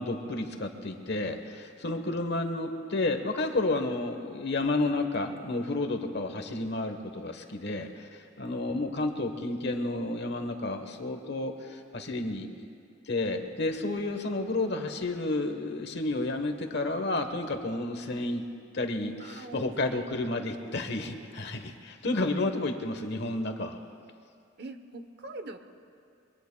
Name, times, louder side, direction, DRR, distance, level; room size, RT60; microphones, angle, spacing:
voice 1, 0.0-12.5 13.1-18.4 18.7-23.8, left 2 dB, 60° left, 6 dB, 1.2 m, -31 dB
voice 2, 19.2-20.5 24.6-25.6, right 2 dB, 60° right, 8 dB, 0.9 m, -44 dB
26.5 x 23.0 x 2.3 m, 2.3 s
head